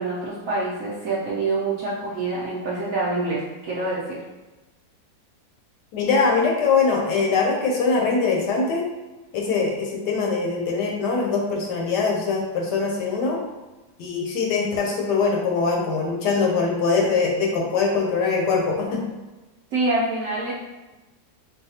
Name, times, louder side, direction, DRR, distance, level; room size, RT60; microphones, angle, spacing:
voice 1, 0.0-4.2 19.7-20.5, right 2 dB, 65° right, -7 dB, 0.8 m, -26 dB
voice 2, 5.9-8.8 9.3-13.4 14.0-19.0, left 4 dB, 70° left, 0 dB, 1.1 m, -22 dB
4.7 x 2.3 x 2.7 m, 1.1 s
omnidirectional pair, 2.0 m